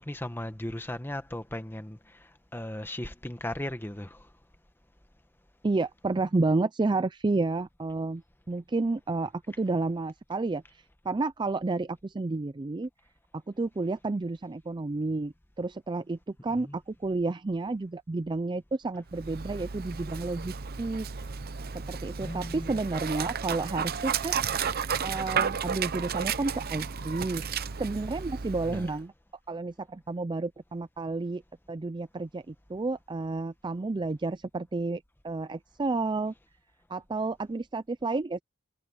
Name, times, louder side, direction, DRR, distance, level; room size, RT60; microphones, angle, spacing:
voice 1, 0.0-4.3 16.6-16.8 22.2-22.8 28.6-28.9, left 1 dB, 10° left, 1.3 m, -37 dB
voice 2, 5.6-8.2 8.5-9.3 9.6-12.9 13.6-21.1 21.9-24.4 25.0-27.4 27.8-29.1 29.5-31.4 31.7-36.3 36.9-38.4, right 3 dB, 20° right, 0.4 m, -31 dB
Dog, 19.1-29.0, right 6 dB, 45° right, 0.7 m, -33 dB
head